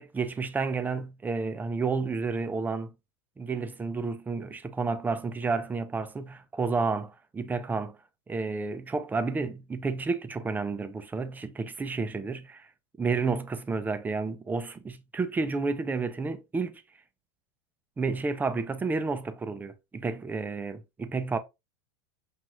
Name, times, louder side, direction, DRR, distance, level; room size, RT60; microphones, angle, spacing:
voice 1, 0.0-2.9 3.4-8.0 8.3-12.7 13.0-16.8 18.0-21.4, right 4 dB, 10° right, 0.5 m, -31 dB
6.0 x 2.4 x 2.9 m
supercardioid pair, 125°, 14 cm